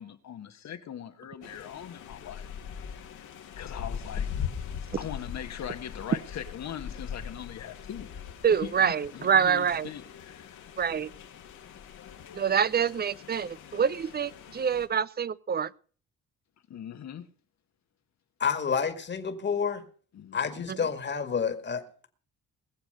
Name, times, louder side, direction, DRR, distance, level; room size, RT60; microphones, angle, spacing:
voice 1, 0.0-2.5 3.2-3.3 3.6-4.3 5.0-8.1 8.5-10.7 16.7-17.2 20.1-20.7, left 9 dB, 65° left, 1.6 m, -41 dB
sound 1, 1.4-14.9, left 8 dB, 80° left, 2.4 m, -41 dB
voice 2, 8.4-9.9 10.8-11.1 12.3-15.7 20.7-20.8, right 7 dB, 35° right, 0.6 m, -26 dB
voice 3, 18.4-19.8 20.3-22.1, left 6 dB, 35° left, 2.0 m, -29 dB
21.0 x 7.2 x 6.6 m
cardioid pair, 90°, 30 cm